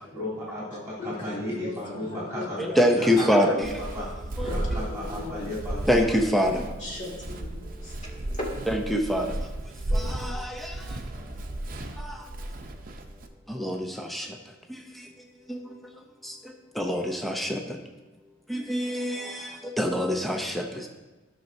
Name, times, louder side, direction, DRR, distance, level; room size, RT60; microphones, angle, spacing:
voice 1, 0.1-2.6 2.9-4.0 4.4-6.2, left 1 dB, 15° right, -9 dB, 3.1 m, -35 dB
voice 2, 1.0-3.1 3.5-3.8 4.4-5.4 6.8-8.5, left 1 dB, 40° left, -3 dB, 2.3 m, -38 dB
voice 3, 2.6-3.7 4.4-4.5 5.9-6.7 8.7-9.3 9.9-11.0 12.0-12.3 13.5-14.4 14.7-15.1 15.5-15.8 16.2-17.8 18.5-20.9, equal, ahead, 2 dB, 0.6 m, -26 dB
Walk footsteps, 3.6-13.3, right 1 dB, 50° right, 0.7 m, -34 dB
13.5 x 6.1 x 2.7 m, 1.2 s
head